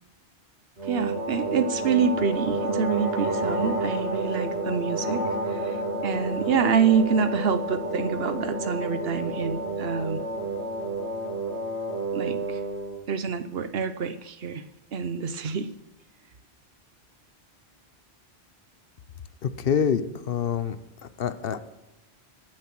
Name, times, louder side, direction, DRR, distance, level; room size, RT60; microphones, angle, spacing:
voice 1, 0.8-10.2 12.1-12.6 13.1-14.6 14.9-15.7, right 6 dB, 70° right, 12 dB, 1.0 m, -27 dB
sound 1, 0.8-13.0, right 1 dB, 85° right, 2.4 m, -30 dB
voice 2, 19.4-20.8 21.2-21.6, left 7 dB, 60° left, 12 dB, 0.9 m, -26 dB
19.0 x 7.6 x 6.0 m, 0.98 s
omnidirectional pair, 1.1 m